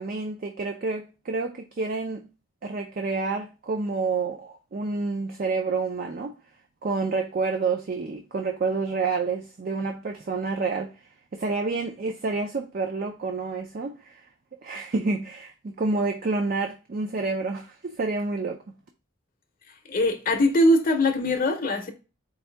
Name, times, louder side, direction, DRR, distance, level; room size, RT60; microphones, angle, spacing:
voice 1, 0.0-2.2 2.6-6.3 6.8-10.9 11.3-14.2 14.6-18.6, right 3 dB, 45° right, 0.4 m, -28 dB
voice 2, 19.9-21.9, left 1 dB, 45° left, 0.7 m, -21 dB
4.7 x 2.6 x 3.2 m
head